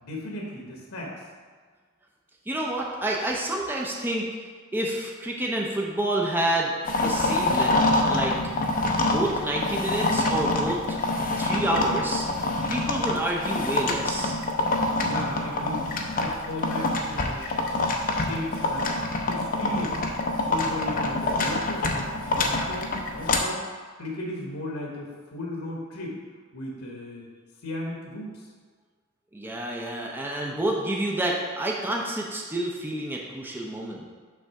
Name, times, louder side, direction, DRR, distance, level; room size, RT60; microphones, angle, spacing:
voice 1, 0.0-1.2 8.6-9.1 10.6-10.8 15.0-15.9 16.1-18.9 19.3-20.0 20.4-23.6 24.0-26.2 26.5-27.2 27.6-28.5, left 1 dB, 90° left, -1 dB, 1.1 m, -36 dB
voice 2, 2.5-4.3 4.7-7.8 8.1-8.4 9.0-11.0 11.4-12.3 12.7-14.4 29.3-34.1, right 1 dB, 10° right, -2 dB, 0.6 m, -28 dB
sound 1, 6.9-23.4, left 2 dB, 40° left, 0.6 m, -26 dB
6.1 x 3.5 x 5.6 m, 1.5 s
head